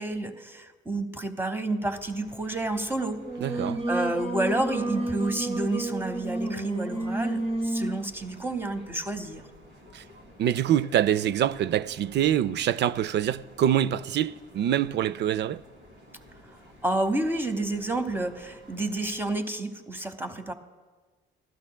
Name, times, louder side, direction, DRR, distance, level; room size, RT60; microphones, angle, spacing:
voice 1, 0.0-3.2 3.5-9.5 16.8-20.5, right 2 dB, 10° right, 0.9 m, -30 dB
sound 1, 1.9-19.3, equal, 85° right, 2.8 m, -52 dB
Singing, 3.2-8.0, right 2 dB, 30° right, 1.1 m, -30 dB
voice 2, 3.4-3.8 9.9-10.0 10.4-15.6, right 10 dB, 55° right, 0.4 m, -25 dB
14.0 x 12.0 x 2.2 m
supercardioid pair, 70°, 21 cm